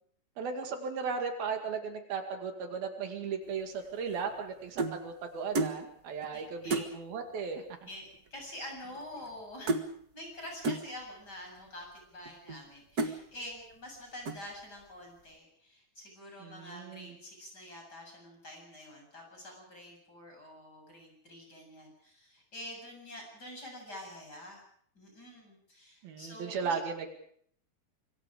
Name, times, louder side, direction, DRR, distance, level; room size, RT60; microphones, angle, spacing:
voice 1, 0.4-7.6 16.4-17.2 26.0-27.1, right 5 dB, 75° right, 5 dB, 4.1 m, -36 dB
sound 1, 3.8-5.0 5.5-5.8 6.2-6.3 6.7-6.9 7.8-7.9 8.1-8.5 8.7-9.4 9.7-9.9 10.6-10.9 11.6-11.7 12.3-12.6 13.0-13.2 13.7-14.0 14.3-14.6, right 3 dB, 50° right, 1.1 m, -33 dB
voice 2, 6.3-6.8 7.9-9.8 10.1-24.6 24.9-26.8, left 1 dB, 25° left, 1 dB, 8.2 m, -47 dB
26.0 x 24.0 x 5.1 m, 0.63 s
omnidirectional pair, 4.3 m